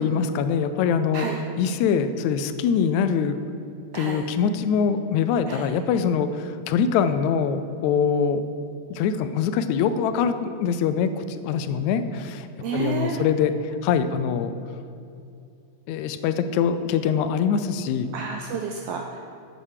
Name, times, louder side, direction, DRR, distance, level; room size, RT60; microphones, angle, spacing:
voice 1, 0.0-3.5 4.0-8.4 9.0-12.5 12.7-13.5 13.8-14.5 15.9-18.1, left 7 dB, 80° left, 10 dB, 1.9 m, -23 dB
voice 2, 12.6-13.2 18.1-19.2, right 6 dB, 85° right, 2 dB, 1.4 m, -30 dB
7.7 x 7.1 x 6.5 m, 2.5 s
omnidirectional pair, 3.3 m